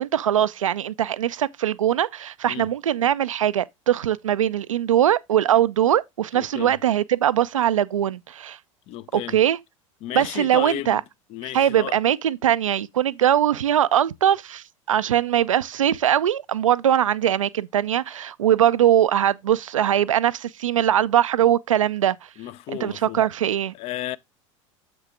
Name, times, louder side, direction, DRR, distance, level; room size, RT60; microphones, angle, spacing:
voice 1, 0.0-8.6 9.1-9.6 10.1-11.0 11.5-22.3 22.8-23.7, right 10 dB, 70° right, 0.4 m, -21 dB
voice 2, 6.3-6.8 8.9-9.4 10.0-11.0 11.3-12.0 22.4-23.2 23.7-24.2, left 14 dB, 35° left, 0.4 m, -33 dB
7.1 x 6.0 x 3.5 m
figure-of-eight pair, 75°, 17 cm